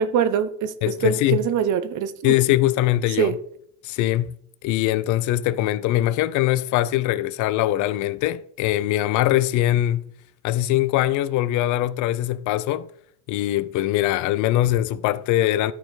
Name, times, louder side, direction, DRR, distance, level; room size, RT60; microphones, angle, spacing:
voice 1, 0.0-2.3 3.2-3.4, right 7 dB, 40° right, 0.8 m, -23 dB
voice 2, 0.8-1.4 2.2-3.4 3.8-4.3 4.6-10.1 10.4-12.9 13.3-15.7, left 14 dB, 40° left, 0.5 m, -22 dB
13.0 x 4.4 x 3.9 m
supercardioid pair, 110°, 48 cm